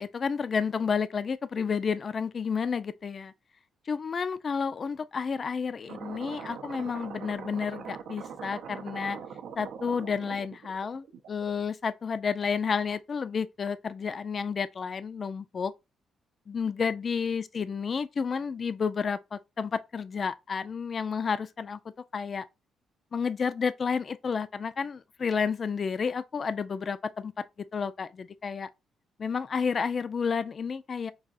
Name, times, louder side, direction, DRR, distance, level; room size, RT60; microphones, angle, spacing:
voice 1, 0.0-3.3 3.9-9.2 9.6-15.7 16.5-21.8 22.1-22.5 23.1-27.3 27.7-28.7 29.2-31.1, left 6 dB, 40° left, 0.3 m, -31 dB
sound 1, 5.9-11.7, right 7 dB, 75° right, 0.5 m, -42 dB
4.7 x 2.4 x 2.5 m
cardioid pair, 90°, 0 cm